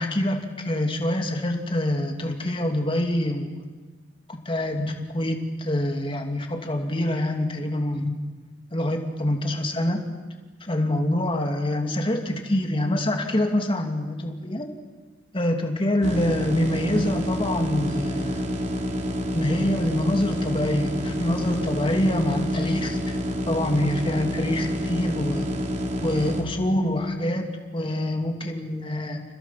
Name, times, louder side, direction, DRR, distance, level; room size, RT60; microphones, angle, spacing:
voice 1, 0.0-3.6 4.3-8.2 8.7-10.0 10.6-14.7 15.3-18.5 19.3-23.1 23.5-25.5 26.0-29.2, left 1 dB, 30° left, 3 dB, 2.8 m, -25 dB
sound 1, 16.0-26.4, equal, 40° right, 3.3 m, -28 dB
30.0 x 29.5 x 6.0 m, 1.3 s
head